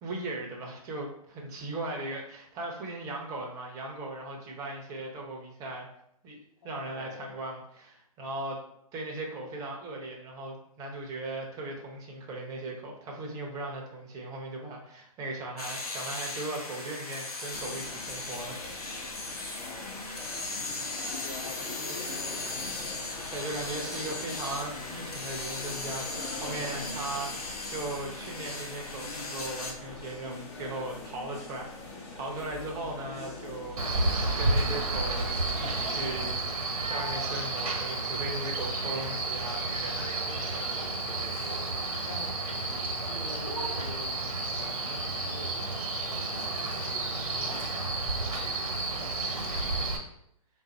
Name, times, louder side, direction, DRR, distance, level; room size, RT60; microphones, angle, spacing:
voice 1, 0.0-5.9 6.2-6.4 6.6-8.6 8.9-19.2 23.3-40.6, right 2 dB, 20° right, 0 dB, 0.8 m, -38 dB
voice 2, 6.6-7.4 19.4-20.1 20.6-20.8 21.1-22.5 40.6-42.4 42.6-49.9, left 3 dB, 65° left, 1 dB, 1.1 m, -48 dB
sound 1, 15.6-29.7, left 2 dB, 90° left, 0.9 m, -38 dB
sound 2, 17.5-36.3, left 3 dB, 45° left, 1.0 m, -43 dB
Male speech man speaking, 33.8-50.0, right 2 dB, 70° right, 1.1 m, -31 dB
3.7 x 2.6 x 4.1 m, 0.74 s
hypercardioid pair, 140°, 19 cm